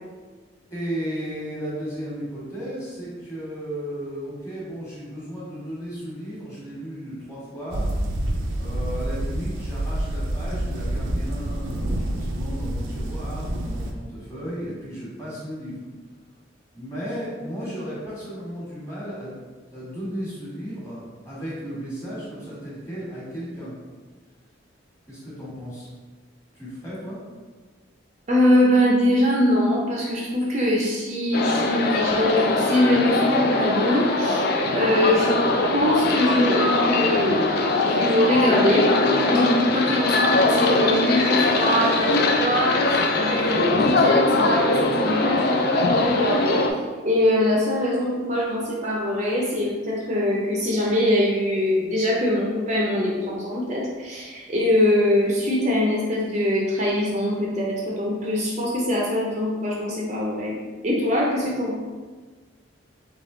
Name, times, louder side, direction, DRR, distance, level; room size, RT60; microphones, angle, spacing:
voice 1, 0.7-7.9 8.5-15.8 16.7-19.3 19.7-23.7 25.1-25.9 26.5-27.2, equal, 15° left, -8 dB, 1.3 m, -34 dB
sound 1, 7.7-13.9, right 1 dB, 80° right, 0.5 m, -27 dB
voice 2, 28.3-35.4 35.7-37.4 37.8-38.9 39.3-46.7 47.0-60.6 60.8-61.8, left 1 dB, 35° right, -3 dB, 0.5 m, -22 dB
sound 2, 31.3-46.7, left 2 dB, 50° left, 0.4 m, -21 dB
3.6 x 3.0 x 3.7 m, 1.4 s
head